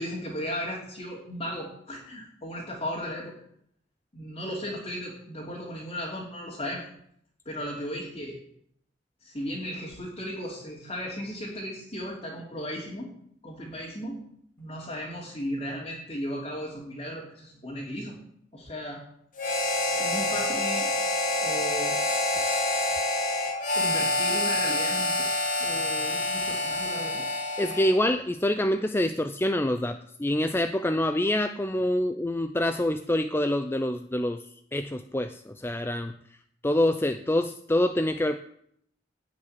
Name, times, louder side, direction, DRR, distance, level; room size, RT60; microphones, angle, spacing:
voice 1, 0.0-3.3 4.1-6.9 7.4-8.4 9.2-13.1 13.4-14.2 14.6-18.2 18.5-19.0 19.9-20.9 21.4-22.0 23.7-25.3 25.6-27.2, equal, 30° left, -4 dB, 3.0 m, -35 dB
Harmonica, 19.4-28.0, left 2 dB, 45° left, 2.7 m, -27 dB
voice 2, 27.6-34.4 34.7-36.1 36.6-38.4, left 1 dB, 15° left, 8 dB, 0.5 m, -26 dB
17.5 x 6.1 x 9.9 m, 0.69 s
head